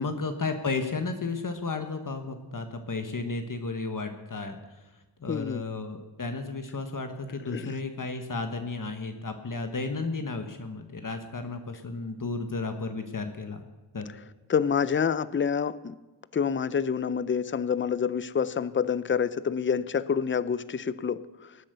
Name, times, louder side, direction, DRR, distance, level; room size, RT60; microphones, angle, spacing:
voice 1, 0.0-4.9 5.2-13.6 13.9-14.0, left 3 dB, 45° left, 6 dB, 1.3 m, -33 dB
voice 2, 5.3-5.6 7.5-7.7 14.5-16.0 16.3-21.5, left 7 dB, 30° left, 17 dB, 0.5 m, -27 dB
18.5 x 8.3 x 6.7 m, 1.1 s
wide cardioid pair, 80°, 44 cm